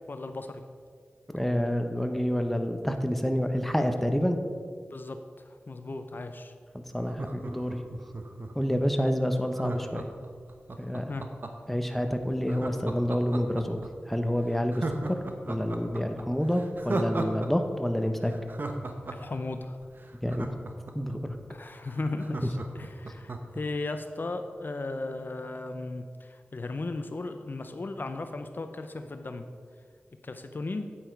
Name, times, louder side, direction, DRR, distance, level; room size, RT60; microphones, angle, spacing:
voice 1, 0.1-0.6 4.9-6.5 11.1-11.3 19.1-19.9 21.5-29.4 30.2-30.9, left 2 dB, 55° left, 7 dB, 0.6 m, -36 dB
voice 2, 1.3-4.4 6.7-7.8 8.5-10.0 10.8-11.1 11.7-15.2 15.5-18.3 20.2-20.5 20.9-21.4 22.4-22.5, equal, 5° left, 5 dB, 0.9 m, -28 dB
Laughter, 7.0-8.7 9.5-11.7 12.5-13.9 14.2-14.3 14.7-17.5 17.7-17.8 18.2-21.1 21.6-21.7 21.9-23.6 24.0-24.1, right 2 dB, 55° right, 1.0 m, -36 dB
8.8 x 8.7 x 4.6 m, 2.1 s
cardioid pair, 50°, 4 cm